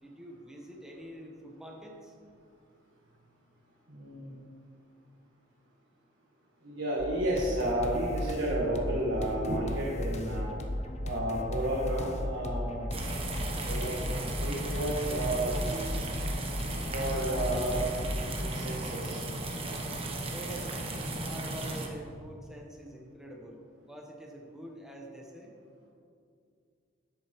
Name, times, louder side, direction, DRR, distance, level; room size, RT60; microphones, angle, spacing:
voice 1, 0.0-2.2 20.2-25.5, equal, 5° right, -1 dB, 1.1 m, -46 dB
voice 2, 3.9-4.4 6.6-10.5 11.0-12.9 13.6-15.9 16.9-18.0 18.3-19.2, right 1 dB, 85° right, -5 dB, 1.4 m, -32 dB
sound 1, 7.0-18.3, left 1 dB, 35° left, 0.7 m, -36 dB
sound 2, 12.9-21.9, right 2 dB, 30° right, 1.0 m, -36 dB
10.5 x 8.2 x 3.1 m, 2.4 s
head